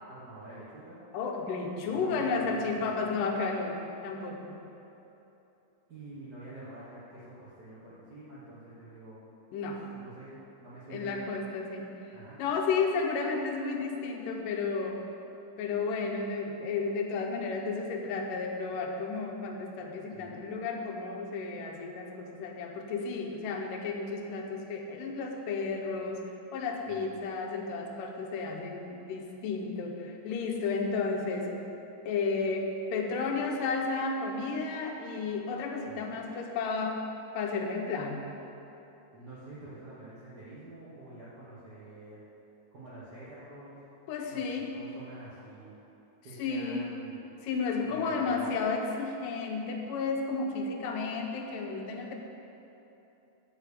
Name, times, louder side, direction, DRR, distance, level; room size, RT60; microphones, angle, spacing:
voice 1, 0.1-1.0 1.7-3.2 5.9-9.3 9.6-11.2 12.1-12.4 20.1-20.4 26.9-27.2 35.9-36.2 39.1-42.2 42.7-43.8 44.3-45.7 46.2-47.3 47.8-48.6, right 2 dB, 65° right, -10 dB, 0.9 m, -47 dB
voice 2, 1.1-3.8 4.0-4.6 9.5-9.8 10.9-11.9 12.4-15.0 15.6-26.2 26.5-31.6 32.1-37.0 37.3-38.2 44.1-44.7 46.4-46.9 47.4-52.1, left 4 dB, 80° left, 1 dB, 2.4 m, -32 dB
9.5 x 4.8 x 6.8 m, 3.0 s
omnidirectional pair, 3.9 m